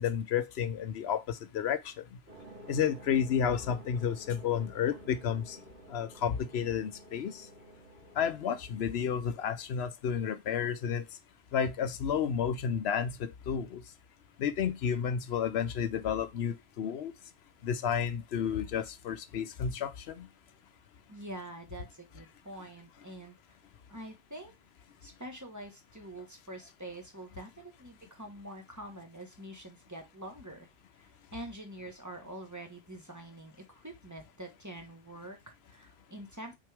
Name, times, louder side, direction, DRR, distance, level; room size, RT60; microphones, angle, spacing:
voice 1, 0.0-2.0 2.7-5.6 5.9-7.5 8.2-11.0 11.5-13.8 14.4-17.1 17.6-20.3, left 8 dB, 85° left, 0.9 m, -31 dB
sound 1, 2.3-9.6, right 1 dB, 75° right, 3.3 m, -52 dB
voice 2, 21.1-23.4 23.9-24.5 25.0-30.7 31.0-36.6, right 1 dB, 15° right, 1.4 m, -46 dB
5.9 x 4.6 x 3.4 m
omnidirectional pair, 1.0 m